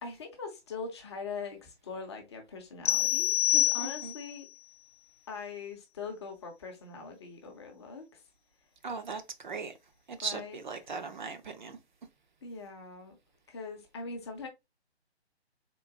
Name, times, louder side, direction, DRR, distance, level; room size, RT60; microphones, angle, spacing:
voice 1, 0.0-4.5 5.3-8.2 10.2-11.1 12.4-13.2 13.5-14.5, left 4 dB, 25° left, 0.7 m, -42 dB
sound 1, 2.8-4.4, left 13 dB, 65° left, 0.7 m, -27 dB
voice 2, 3.8-4.1 8.8-9.7 10.1-11.8, right 4 dB, 45° right, 0.7 m, -38 dB
3.8 x 2.5 x 3.6 m
figure-of-eight pair, 145°, 33 cm